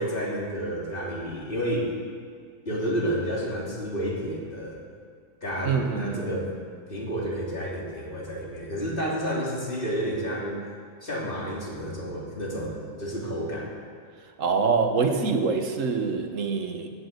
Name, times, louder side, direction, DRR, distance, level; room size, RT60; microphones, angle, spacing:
voice 1, 0.0-1.9 2.7-4.8 5.4-6.6 6.9-10.6 11.0-13.7, equal, 40° left, -4 dB, 3.6 m, -30 dB
voice 2, 5.6-6.3 14.4-16.9, right 5 dB, 65° right, 6 dB, 1.6 m, -25 dB
18.0 x 9.4 x 8.1 m, 2.1 s
omnidirectional pair, 1.4 m